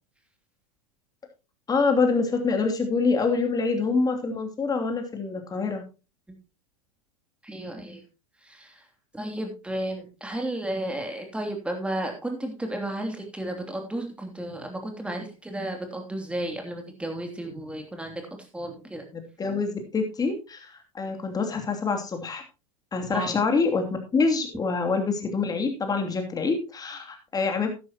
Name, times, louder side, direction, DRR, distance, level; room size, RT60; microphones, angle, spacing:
voice 1, 1.7-5.8 19.1-22.4 22.9-23.8 24.1-27.7, left 4 dB, 20° left, 4 dB, 2.9 m, -26 dB
voice 2, 7.4-8.0 8.4-8.8 9.1-18.2 18.5-19.0 23.1-23.4, right 1 dB, 5° right, 3 dB, 3.0 m, -33 dB
12.5 x 11.0 x 3.0 m, 0.30 s
hypercardioid pair, 100°, 18 cm